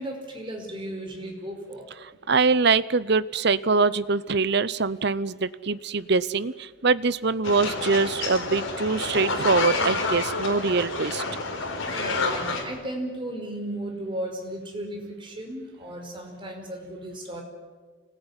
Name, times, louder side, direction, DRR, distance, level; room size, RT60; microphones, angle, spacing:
voice 1, 0.0-1.8 11.8-17.4, right 1 dB, 25° right, 2 dB, 5.1 m, -35 dB
voice 2, 2.3-11.2, right 4 dB, 55° right, 17 dB, 0.8 m, -23 dB
sound 1, 7.4-12.6, left 3 dB, 75° left, 4.1 m, -29 dB
26.0 x 20.0 x 9.9 m, 1.4 s
head